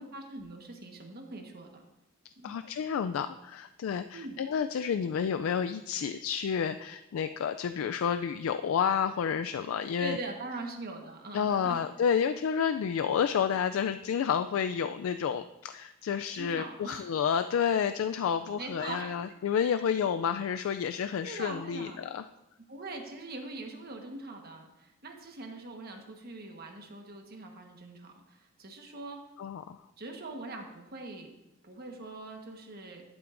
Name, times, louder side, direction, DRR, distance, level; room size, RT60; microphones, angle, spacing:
voice 1, 0.0-1.8 2.4-2.6 4.1-4.4 9.6-11.8 16.3-17.1 18.6-19.3 21.2-22.0 22.7-29.2 30.0-31.3 31.6-33.0, right 2 dB, 50° right, 2 dB, 1.3 m, -42 dB
voice 2, 2.4-10.2 11.3-22.2 29.4-29.8, left 7 dB, 85° left, 10 dB, 0.3 m, -30 dB
11.5 x 8.8 x 2.6 m, 0.95 s
head